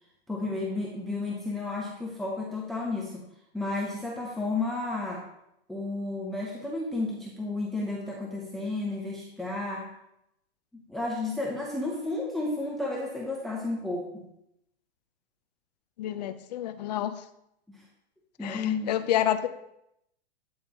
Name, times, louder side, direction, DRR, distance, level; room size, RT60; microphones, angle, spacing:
voice 1, 0.3-3.3 3.5-5.2 5.7-9.9 10.7-14.2 17.7-17.8 18.4-18.9, left 2 dB, ahead, -3 dB, 0.5 m, -32 dB
voice 2, 16.0-17.2 18.4-19.5, left 11 dB, 40° left, 10 dB, 0.6 m, -29 dB
12.0 x 9.0 x 2.9 m, 0.80 s
hypercardioid pair, 160°, 33 cm